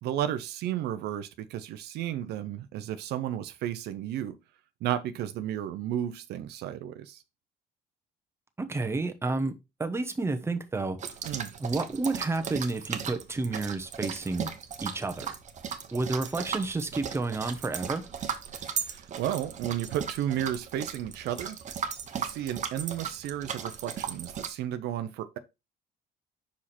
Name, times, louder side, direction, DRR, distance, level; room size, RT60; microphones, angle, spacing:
voice 1, 0.0-4.4 4.8-7.2 11.2-11.5 18.8-21.6 22.2-25.4, right 11 dB, 75° right, 0.7 m, -33 dB
voice 2, 8.6-9.5 9.8-11.0 11.6-14.5 14.8-15.4 15.9-18.0, right 3 dB, 15° right, 1.0 m, -30 dB
sound 1, 11.0-24.5, right 7 dB, 45° right, 1.0 m, -37 dB
5.8 x 4.9 x 4.3 m
cardioid pair, 110°, 17 cm